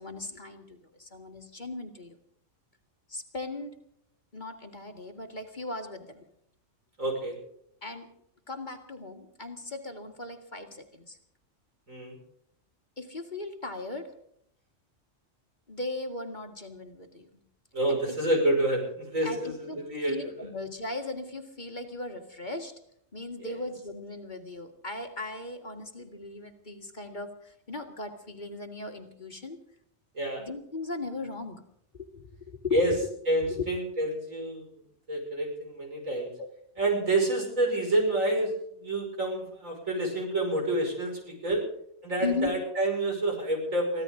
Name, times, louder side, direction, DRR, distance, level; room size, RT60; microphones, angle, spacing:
voice 1, 0.0-2.2 3.1-3.7 4.3-6.3 7.8-8.1 8.5-11.2 13.0-14.1 15.7-17.3 17.9-18.1 19.2-19.8 20.1-22.7 23.1-29.6 30.4-31.6 31.9-32.8 33.5-33.6 36.4-36.5 41.5-41.6 42.2-42.5, left 3 dB, 35° left, 4 dB, 2.0 m, -37 dB
voice 2, 7.0-7.3 11.9-12.2 17.7-20.5 23.4-23.5 30.2-30.4 32.7-32.9 33.3-34.7 35.1-36.3 36.8-38.5 38.8-41.6 42.0-44.0, right 1 dB, 85° right, 0 dB, 6.1 m, -28 dB
24.0 x 16.0 x 3.8 m, 0.70 s
omnidirectional pair, 1.3 m